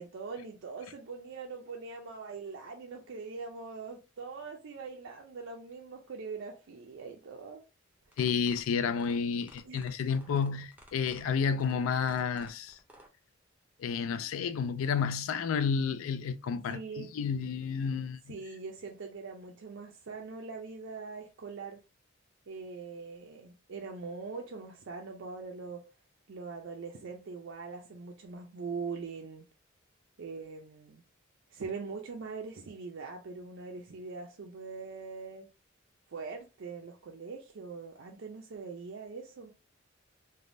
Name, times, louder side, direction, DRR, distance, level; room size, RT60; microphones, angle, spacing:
voice 1, 0.0-7.6 9.6-9.8 16.7-17.1 18.3-21.8 22.5-25.8 26.3-29.5 30.2-31.0 31.5-35.5 36.1-39.5, right 4 dB, 60° right, 0.4 m, -42 dB
sound 1, 8.0-13.1, right 1 dB, 10° right, 0.5 m, -55 dB
voice 2, 8.2-12.8 13.8-18.3, left 6 dB, 75° left, 0.3 m, -31 dB
3.3 x 2.2 x 2.6 m
head